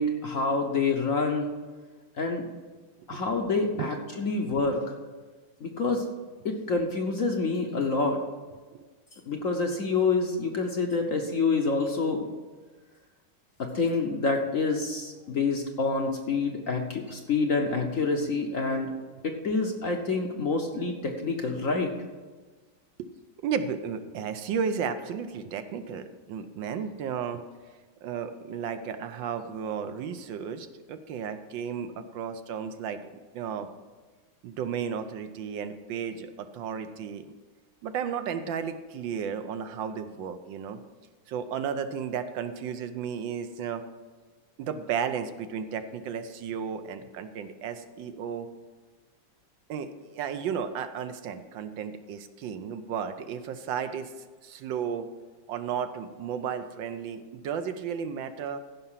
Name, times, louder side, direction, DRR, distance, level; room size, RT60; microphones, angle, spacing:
voice 1, 0.0-1.5 2.2-2.4 3.1-4.9 5.6-6.0 6.4-8.2 9.3-12.2 13.6-18.9 19.2-21.9, left 3 dB, 55° left, 3 dB, 1.0 m, -27 dB
voice 2, 23.4-27.4 28.0-33.0 33.3-33.7 34.4-37.2 37.8-40.8 41.3-43.8 44.6-48.5 49.7-54.1 54.4-55.1 55.5-58.6, right 7 dB, 75° right, 9 dB, 1.4 m, -33 dB
14.5 x 5.6 x 5.7 m, 1.3 s
omnidirectional pair, 2.2 m